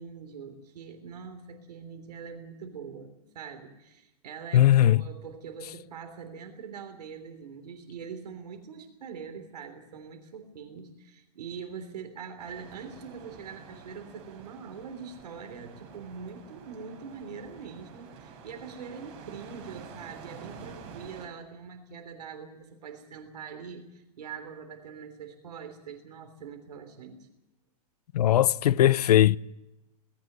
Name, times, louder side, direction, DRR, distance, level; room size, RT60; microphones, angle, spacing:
voice 1, 0.0-27.3, right 6 dB, 90° right, 3.4 m, -43 dB
voice 2, 4.5-5.0 28.1-29.4, left 12 dB, 75° left, 0.6 m, -19 dB
sound 1, 12.4-21.3, right 6 dB, 30° right, 5.1 m, -48 dB
19.0 x 17.5 x 8.1 m
supercardioid pair, 165°, 20 cm